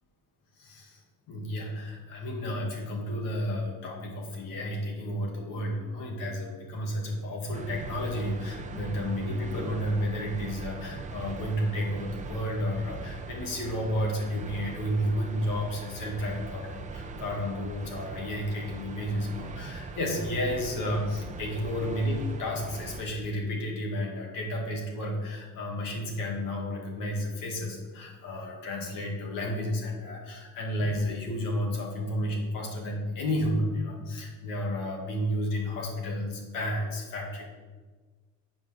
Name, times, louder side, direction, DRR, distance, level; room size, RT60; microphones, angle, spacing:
voice 1, 0.6-1.0 1.3-37.4, equal, 80° left, -1 dB, 2.2 m, -32 dB
sound 1, 7.5-23.0, right 4 dB, 25° right, 0.5 m, -41 dB
7.8 x 5.0 x 6.5 m, 1.4 s
cardioid pair, 175°, 33 cm